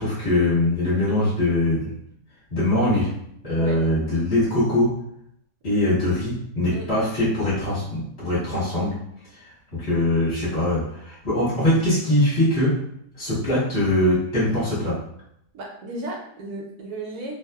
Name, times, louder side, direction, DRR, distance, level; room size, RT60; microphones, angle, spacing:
voice 1, 0.0-1.9 2.5-3.1 3.4-4.9 5.6-9.0 9.4-12.8 13.2-15.0, left 1 dB, 45° left, -11 dB, 1.1 m, -22 dB
voice 2, 15.5-17.4, right 2 dB, 70° right, 0 dB, 1.1 m, -34 dB
2.7 x 2.3 x 2.2 m, 0.73 s
omnidirectional pair, 1.8 m